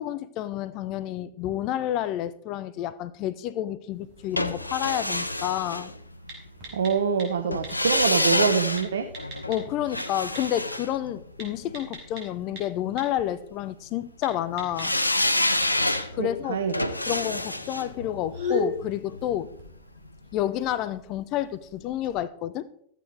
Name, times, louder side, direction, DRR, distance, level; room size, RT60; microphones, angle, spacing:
voice 1, 0.0-5.9 7.5-7.6 9.5-14.9 16.1-16.6 17.1-19.5 20.3-22.7, left 12 dB, 40° left, 0.7 m, -29 dB
sound 1, 3.9-22.2, left 2 dB, 45° right, 5.4 m, -41 dB
sound 2, 4.4-6.5 7.5-11.8 14.8-19.8 20.1-20.2, left 1 dB, 85° left, 0.7 m, -28 dB
voice 2, 6.7-9.1 16.2-16.9, right 6 dB, 65° right, 0.8 m, -25 dB
14.0 x 9.1 x 4.7 m
figure-of-eight pair, 90°, 0 cm